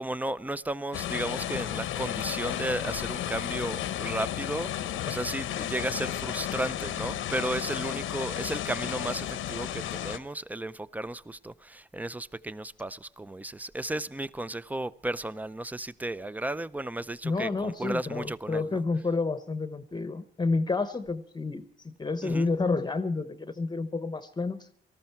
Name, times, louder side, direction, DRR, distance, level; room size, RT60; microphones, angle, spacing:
voice 1, 0.0-18.8 22.2-22.5, right 1 dB, 10° right, 0.5 m, -34 dB
sound 1, 0.9-10.2, left 11 dB, 80° left, 0.9 m, -33 dB
voice 2, 17.2-24.7, left 3 dB, 20° left, 0.9 m, -30 dB
18.5 x 14.0 x 4.5 m
cardioid pair, 90°, 20 cm